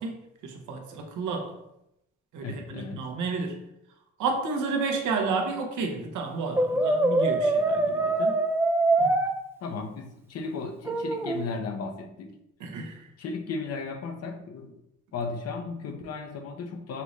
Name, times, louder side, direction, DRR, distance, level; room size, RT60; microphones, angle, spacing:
voice 1, 0.0-1.5 2.3-3.6 4.2-8.4 9.0-9.2 12.6-13.0, right 4 dB, 80° right, 2 dB, 0.9 m, -31 dB
voice 2, 2.4-3.0 9.6-12.3 13.2-14.8 15.1-17.0, left 4 dB, 55° left, 5 dB, 0.7 m, -35 dB
Brass instrument, 6.6-9.3 10.9-11.4, right 2 dB, 10° right, 0.3 m, -24 dB
5.5 x 2.6 x 3.1 m, 0.84 s
cardioid pair, 90°, 30 cm